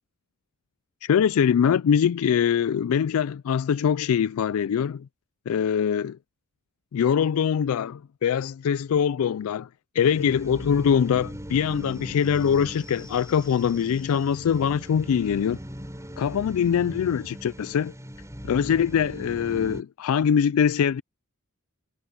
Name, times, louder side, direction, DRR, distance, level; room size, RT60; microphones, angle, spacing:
voice 1, 1.0-5.1 5.5-6.2 6.9-9.7 10.0-15.6 16.2-17.9 18.4-21.0, left 7 dB, 70° left, 0.3 m, -23 dB
sound 1, 10.0-19.8, equal, 15° right, 5.6 m, -40 dB
sound 2, 11.6-18.8, left 3 dB, 20° left, 6.0 m, -56 dB
head